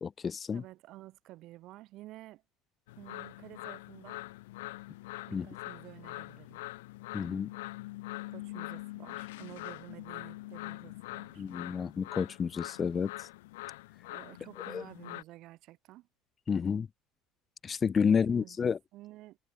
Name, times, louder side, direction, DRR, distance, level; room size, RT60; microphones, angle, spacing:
voice 1, 0.0-0.6 5.3-5.5 7.1-7.5 11.4-13.3 14.7-14.8 16.5-16.9 17.6-18.8, left 6 dB, 35° left, 0.8 m, -30 dB
voice 2, 0.5-2.4 3.0-4.2 5.3-6.6 8.3-11.4 14.1-16.1 18.1-19.4, right 17 dB, 65° right, 3.0 m, -51 dB
sound 1, 2.9-15.2, left 19 dB, 85° left, 3.4 m, -44 dB
supercardioid pair, 85°, 0 cm